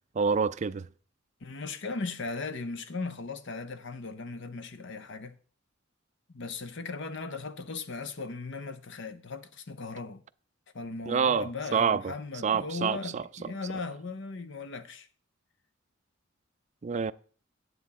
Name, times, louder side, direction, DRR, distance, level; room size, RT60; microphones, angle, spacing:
voice 1, 0.2-0.9 11.1-12.1 12.4-13.2 16.8-17.1, right 6 dB, 35° right, 0.4 m, -27 dB
voice 2, 1.4-5.3 6.3-10.2 10.7-15.1, left 3 dB, 65° left, 0.8 m, -37 dB
9.6 x 8.1 x 4.2 m
head